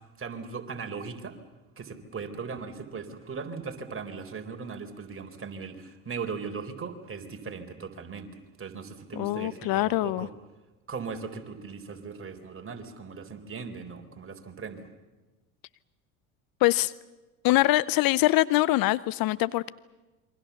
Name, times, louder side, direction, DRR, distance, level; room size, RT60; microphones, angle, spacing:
voice 1, 0.2-1.4 1.8-10.4 10.9-14.9, right 5 dB, 30° right, 5 dB, 4.0 m, -38 dB
voice 2, 9.2-10.3 16.6-16.9 17.4-19.7, left 18 dB, 55° left, 19 dB, 0.7 m, -23 dB
27.5 x 23.5 x 7.1 m, 1.2 s
hypercardioid pair, 70°, 44 cm